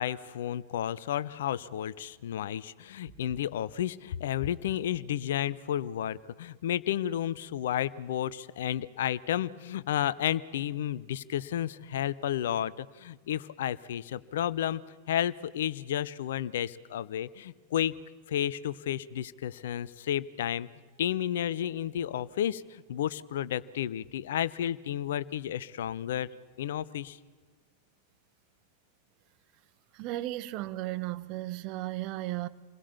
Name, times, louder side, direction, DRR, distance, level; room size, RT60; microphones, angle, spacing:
voice 1, 0.0-14.8 15.1-17.9 18.3-20.7 21.0-26.3 26.6-27.2, left 11 dB, 60° left, 0.8 m, -32 dB
voice 2, 29.9-32.5, right 16 dB, 40° right, 1.1 m, -35 dB
28.0 x 21.0 x 7.1 m
figure-of-eight pair, 90°, 0 cm